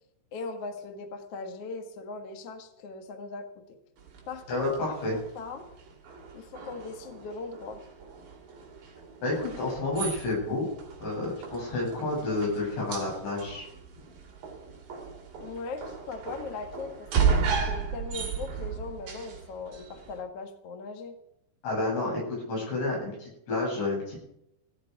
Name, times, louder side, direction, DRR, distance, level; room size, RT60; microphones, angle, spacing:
voice 1, 0.3-3.6 4.3-5.6 6.3-7.8 15.4-21.2, left 4 dB, 80° left, 6 dB, 1.3 m, -39 dB
sound 1, 4.0-20.2, right 6 dB, 50° right, 3.9 m, -35 dB
voice 2, 4.5-5.2 9.2-10.7 11.0-13.6 21.6-24.3, left 2 dB, 65° left, -3 dB, 10.5 m, -30 dB
17.0 x 15.0 x 4.8 m, 0.80 s
omnidirectional pair, 5.6 m